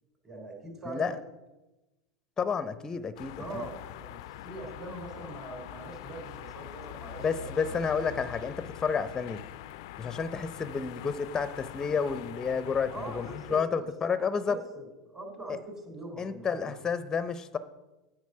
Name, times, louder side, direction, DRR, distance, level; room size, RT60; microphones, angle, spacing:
voice 1, 0.2-1.1 3.4-7.8 12.9-14.1 14.5-16.7, right 2 dB, 20° right, 2 dB, 3.3 m, -42 dB
voice 2, 2.4-3.6 7.2-9.4 10.0-14.6 15.5-15.6 16.2-17.6, left 6 dB, 20° left, 13 dB, 0.6 m, -30 dB
sound 1, 3.2-13.6, left 13 dB, 65° left, 0.4 m, -44 dB
9.3 x 4.9 x 6.6 m, 1.1 s
hypercardioid pair, 85°, 3 cm